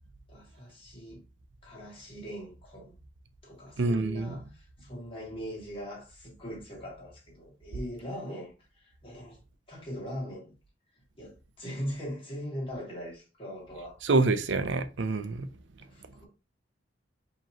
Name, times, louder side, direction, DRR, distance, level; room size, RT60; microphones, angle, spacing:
voice 1, 0.3-1.2 1.6-3.0 3.4-9.4 9.7-10.5 10.9-14.0 15.8-16.3, equal, 30° left, 1.9 m, -41 dB
voice 2, 3.8-4.4 14.0-15.5, right 3 dB, 80° right, 0.5 m, -26 dB
4.9 x 3.0 x 2.8 m
head